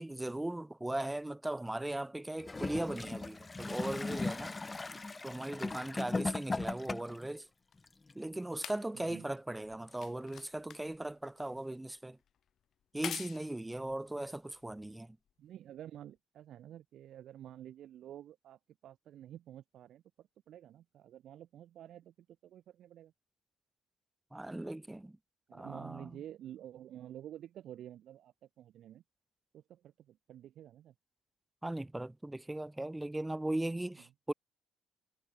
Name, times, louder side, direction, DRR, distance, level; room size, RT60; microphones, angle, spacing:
voice 1, 0.0-4.5 5.2-7.5 8.2-12.2 12.9-15.2 24.3-25.1 25.5-26.1 31.6-34.3, right 1 dB, 10° right, 0.8 m, -38 dB
Gurgling / Toilet flush, 2.4-7.3 8.1-8.2, left 3 dB, 20° left, 0.3 m, -38 dB
voice 2, 6.0-6.3 8.9-9.3 15.4-22.1 22.4-23.1 25.5-29.0 29.5-30.9, right 11 dB, 55° right, 2.5 m, -50 dB
sound 1, 6.7-15.3 16.2-16.3, left 9 dB, 50° left, 0.9 m, -50 dB
figure-of-eight pair, 45°, 0 cm